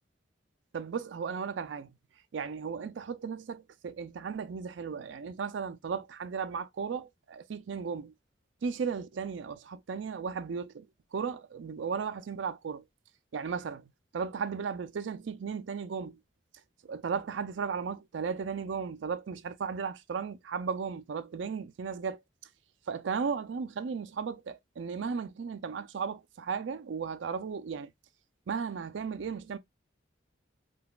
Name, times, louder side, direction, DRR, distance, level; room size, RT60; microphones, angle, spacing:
voice 1, 0.7-2.0 2.3-8.1 8.6-10.9 11.1-12.8 13.3-16.2 16.8-22.2 22.9-27.9 28.5-29.6, right 6 dB, 75° right, 0.4 m, -35 dB
3.8 x 2.4 x 2.3 m
head